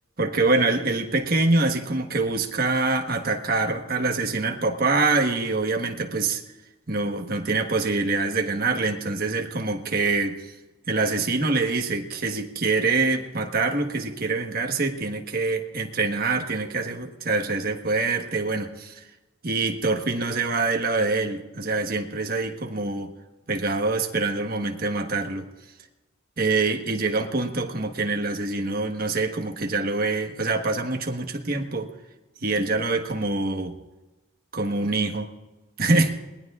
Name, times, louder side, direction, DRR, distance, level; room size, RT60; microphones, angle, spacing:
voice 1, 0.2-6.4 6.9-10.5 10.9-19.0 19.4-23.1 23.5-25.5 26.4-31.9 32.4-33.8 34.5-35.3 35.8-36.2, right 3 dB, 45° right, 4 dB, 1.3 m, -25 dB
28.0 x 20.0 x 2.4 m, 1.1 s
head